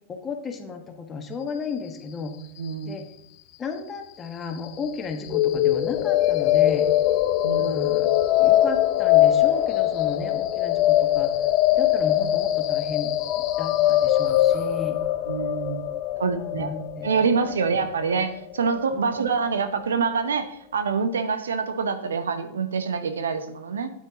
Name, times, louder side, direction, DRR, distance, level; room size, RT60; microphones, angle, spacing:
voice 1, 0.1-2.4 2.8-3.0 3.6-6.9 7.6-8.1 8.4-11.3 11.7-15.0 16.1-17.1 17.4-17.7 18.9-19.2, left 5 dB, 20° left, 4 dB, 1.3 m, -34 dB
voice 2, 2.6-3.0 7.4-7.9 15.3-15.8 16.2-16.7 17.0-23.9, right 5 dB, 70° right, 9 dB, 0.9 m, -26 dB
sound 1, 5.3-19.3, left 13 dB, 40° left, 0.6 m, -22 dB
12.5 x 9.1 x 2.9 m, 0.77 s
figure-of-eight pair, 90°, 0 cm